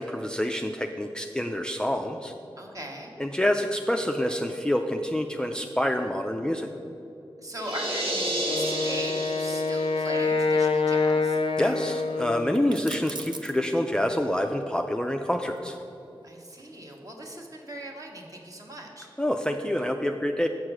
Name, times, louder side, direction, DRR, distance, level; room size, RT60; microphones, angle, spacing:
voice 1, 0.0-2.3 3.2-6.8 11.6-15.8 19.2-20.5, left 1 dB, 10° left, 4 dB, 0.4 m, -27 dB
voice 2, 2.6-3.1 7.4-11.4 16.2-19.1, right 1 dB, 40° right, 0 dB, 1.3 m, -39 dB
sound 1, 7.6-10.1, right 1 dB, 85° right, 1.2 m, -31 dB
Wind instrument woodwind instrument, 8.4-12.7, left 3 dB, 75° left, 0.5 m, -26 dB
sound 2, 12.5-13.7 15.5-17.1, right 3 dB, 55° right, 0.6 m, -42 dB
7.1 x 4.7 x 6.2 m, 2.8 s
cardioid pair, 45°, 9 cm